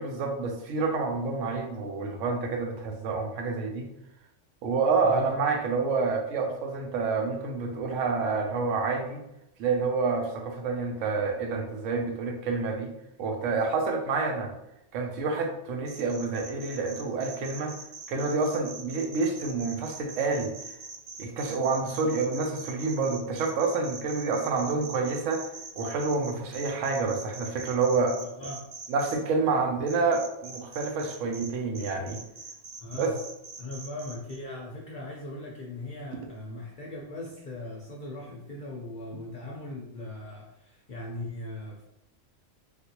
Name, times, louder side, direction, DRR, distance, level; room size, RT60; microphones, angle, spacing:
voice 1, 0.0-3.9 4.6-9.2 9.6-12.9 13.2-14.5 14.9-17.7 18.1-20.8 21.2-25.4 25.8-28.2 28.9-32.2 32.9-33.1, right 4 dB, 90° right, 2 dB, 1.0 m, -28 dB
voice 2, 5.0-5.3 28.2-28.7 32.8-33.2 33.6-41.8, left 2 dB, 55° left, -2 dB, 0.5 m, -39 dB
sound 1, 15.9-29.2 29.9-31.5 31.7-34.4, right 4 dB, 65° right, 0.8 m, -42 dB
3.4 x 2.5 x 2.8 m, 0.84 s
omnidirectional pair, 1.3 m